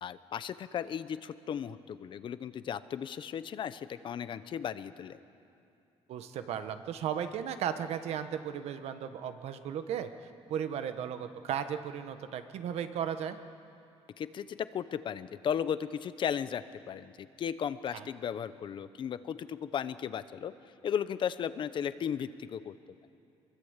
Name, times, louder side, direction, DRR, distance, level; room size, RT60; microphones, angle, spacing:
voice 1, 0.0-5.2 14.2-20.5 20.8-22.7, left 8 dB, 50° left, 13 dB, 0.8 m, -35 dB
voice 2, 6.1-13.4 17.9-18.0, right 8 dB, 75° right, 9 dB, 1.3 m, -35 dB
24.0 x 22.5 x 8.2 m, 2.7 s
cardioid pair, 150°, 11 cm